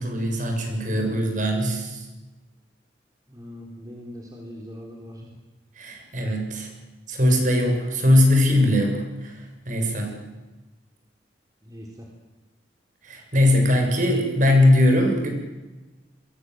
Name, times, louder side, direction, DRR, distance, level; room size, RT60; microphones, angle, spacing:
voice 1, 0.0-2.0 5.8-6.7 7.1-9.4 9.7-10.2 13.0-15.3, left 1 dB, 45° right, 3 dB, 7.1 m, -20 dB
voice 2, 3.3-5.3 11.6-12.1, equal, 20° right, 0 dB, 4.1 m, -41 dB
27.5 x 23.0 x 8.0 m, 1.2 s
head